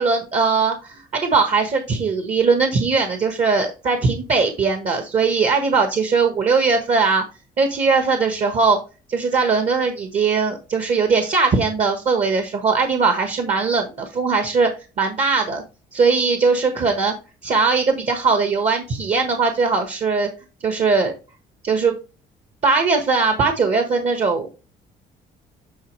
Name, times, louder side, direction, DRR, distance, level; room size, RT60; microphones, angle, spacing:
voice 1, 0.0-7.2 7.6-8.8 9.1-14.7 15.0-15.6 15.9-17.1 17.4-20.3 20.6-21.1 21.6-21.9 22.6-24.5, right 4 dB, 45° right, 6 dB, 1.4 m, -20 dB
9.4 x 4.0 x 3.2 m, 0.32 s
cardioid pair, 110°, 17 cm